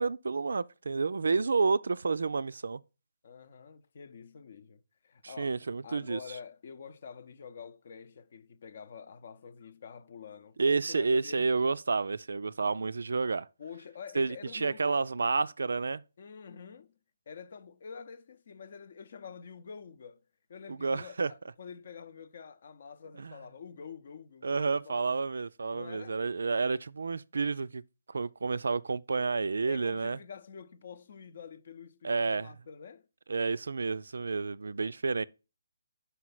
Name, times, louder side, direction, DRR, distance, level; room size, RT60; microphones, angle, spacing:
voice 1, 0.0-2.8 5.2-6.2 10.6-13.5 14.1-16.0 20.7-21.3 23.2-23.4 24.4-27.8 28.1-30.2 32.0-32.5 33.3-35.2, right 4 dB, 65° right, 0.3 m, -30 dB
voice 2, 3.2-5.6 5.8-10.6 10.9-11.5 13.6-14.9 16.2-16.9 17.3-20.2 20.5-25.2 25.7-26.3 29.3-33.1, left 6 dB, 50° left, 0.7 m, -47 dB
5.6 x 4.9 x 5.8 m
figure-of-eight pair, 145°, 0 cm